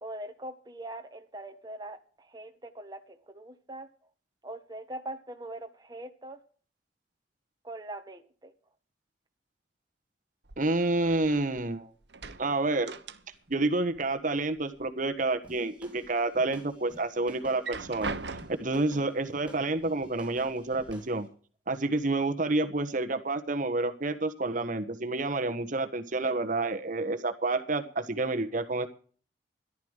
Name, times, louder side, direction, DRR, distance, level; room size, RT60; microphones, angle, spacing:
voice 1, 0.0-3.9 4.4-6.4 7.6-8.5, right 1 dB, 25° right, 5 dB, 1.4 m, -42 dB
sound 1, 10.5-11.7 12.0-13.6 13.9-14.9 15.3-16.1 16.6-16.7 17.4-18.8 19.8-19.9 20.3-20.9, right 4 dB, 80° right, 1.3 m, -41 dB
voice 2, 10.6-11.9 12.4-13.0 13.5-18.2 18.6-21.3 21.7-28.9, right 2 dB, 50° right, 8 dB, 1.3 m, -29 dB
sound 2, 15.4-21.2, right 1 dB, 5° right, 5.0 m, -51 dB
14.5 x 11.5 x 6.5 m, 0.43 s
head